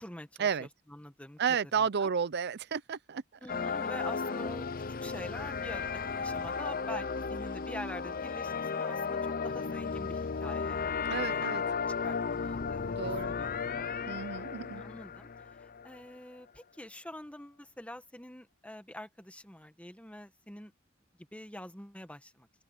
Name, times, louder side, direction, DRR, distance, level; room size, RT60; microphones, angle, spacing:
voice 1, 0.0-1.4 1.8-2.1 3.4-5.9 6.2-10.8 11.3-11.5 12.0-13.9 14.7-15.3 15.6-20.7 21.3-22.5, left 1 dB, 5° left, 1.5 m, -46 dB
voice 2, 1.4-3.2 11.1-11.6 12.8-13.3 14.1-14.8, right 6 dB, 55° right, 0.5 m, -32 dB
sound 1, 3.5-16.1, left 5 dB, 45° left, 0.7 m, -34 dB
open air
head